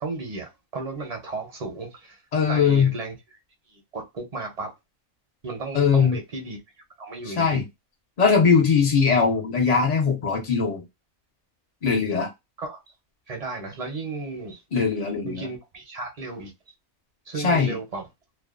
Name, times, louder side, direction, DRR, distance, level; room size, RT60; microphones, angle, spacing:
voice 1, 0.0-2.2 2.5-3.4 3.7-4.7 5.4-6.6 7.0-7.6 12.6-12.8 13.3-14.6 15.2-16.5 17.3-18.1, right 3 dB, 45° right, 0.5 m, -34 dB
voice 2, 2.3-2.9 5.7-6.2 7.4-7.6 8.2-10.8 11.8-12.3 14.7-15.5 17.4-17.8, left 5 dB, 65° left, 0.4 m, -20 dB
2.5 x 2.1 x 2.4 m
omnidirectional pair, 1.5 m